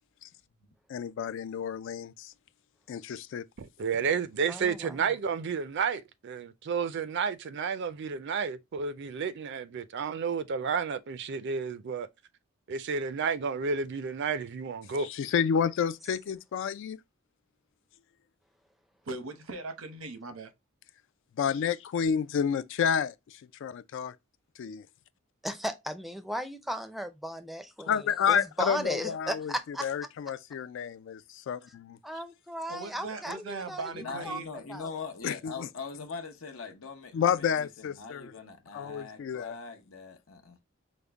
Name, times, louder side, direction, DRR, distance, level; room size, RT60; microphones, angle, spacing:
voice 1, 0.9-2.3 2.9-3.4 15.0-17.0 21.4-24.1 24.6-24.8 27.9-32.0 35.2-35.7 37.1-38.3 38.7-39.5, left 7 dB, 65° left, 0.3 m, -30 dB
voice 2, 3.6-12.1 12.7-15.1, right 5 dB, 60° right, 0.4 m, -31 dB
voice 3, 4.5-5.1 25.4-29.9 32.0-34.4 34.7-34.9, equal, ahead, 0.4 m, -36 dB
voice 4, 19.1-20.5 32.7-34.5, right 3 dB, 85° right, 0.8 m, -39 dB
voice 5, 33.9-40.6, left 4 dB, 85° left, 0.9 m, -42 dB
5.1 x 2.1 x 3.4 m
head